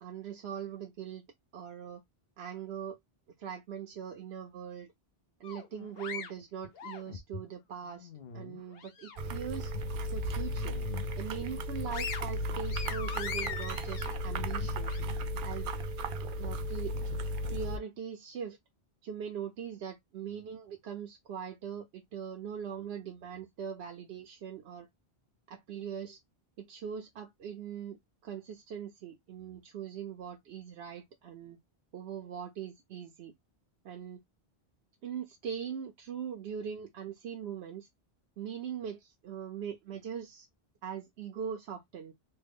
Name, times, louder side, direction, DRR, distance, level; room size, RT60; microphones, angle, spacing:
voice 1, 0.0-1.2 1.5-2.0 2.4-3.0 3.4-4.9 5.4-8.1 8.3-9.7 10.1-10.7 11.2-14.9 15.4-15.7 16.4-17.0 17.5-18.6 19.0-24.9 25.5-26.2 26.6-28.0 28.2-31.6 31.9-33.3 33.8-34.2 35.0-37.9 38.4-40.5 40.8-42.1, right 8 dB, 90° right, 0.9 m, -41 dB
sound 1, 5.4-7.5 7.9-9.4 9.7-9.9 10.4-11.1 11.5-15.0, left 5 dB, 70° left, 0.9 m, -41 dB
sound 2, 9.2-17.8, equal, 60° right, 0.7 m, -35 dB
3.2 x 2.1 x 3.3 m
omnidirectional pair, 1.1 m